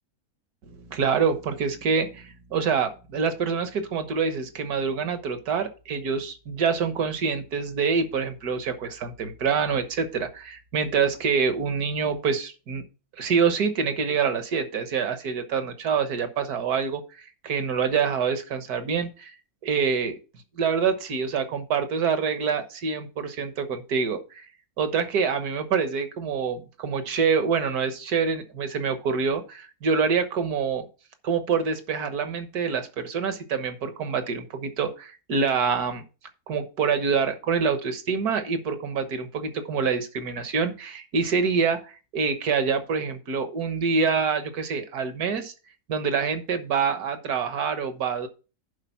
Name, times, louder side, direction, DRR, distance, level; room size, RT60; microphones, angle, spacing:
voice 1, 0.6-12.8 13.2-19.3 19.6-20.2 20.6-24.5 24.8-30.9 31.2-36.0 36.5-45.5 45.9-48.3, right 5 dB, 75° right, 9 dB, 1.7 m, -26 dB
10.5 x 4.2 x 5.7 m, 0.33 s
omnidirectional pair, 1.6 m